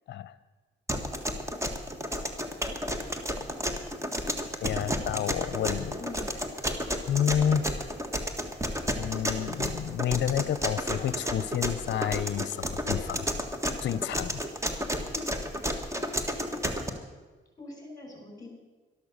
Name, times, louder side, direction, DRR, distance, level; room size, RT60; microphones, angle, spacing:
sound 1, 0.9-16.9, equal, 15° right, 1.6 m, -31 dB
voice 1, 4.6-6.0 7.1-7.7 9.0-13.3 13.8-14.4, left 9 dB, 65° left, 15 dB, 0.7 m, -29 dB
voice 2, 6.0-6.4 15.0-15.3 17.6-18.5, left 3 dB, 20° left, 2 dB, 5.5 m, -42 dB
12.5 x 12.5 x 6.6 m, 1.3 s
cardioid pair, 90°, 20 cm